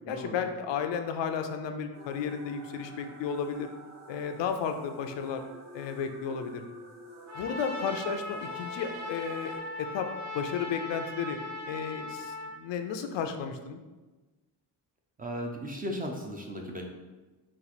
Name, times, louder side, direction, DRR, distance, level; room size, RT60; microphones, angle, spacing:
voice 1, 0.1-3.7 4.1-5.4 5.7-6.6 7.3-10.1 10.3-11.4 11.7-13.8, left 6 dB, 80° left, 7 dB, 0.5 m, -33 dB
sound 1, 1.9-9.6, right 1 dB, 40° right, 1.5 m, -50 dB
Trumpet, 7.3-12.6, left 2 dB, 70° right, 0.9 m, -39 dB
voice 2, 15.2-16.8, equal, 20° right, 1 dB, 0.4 m, -36 dB
4.2 x 2.4 x 4.1 m, 1.2 s
cardioid pair, 125°, 43 cm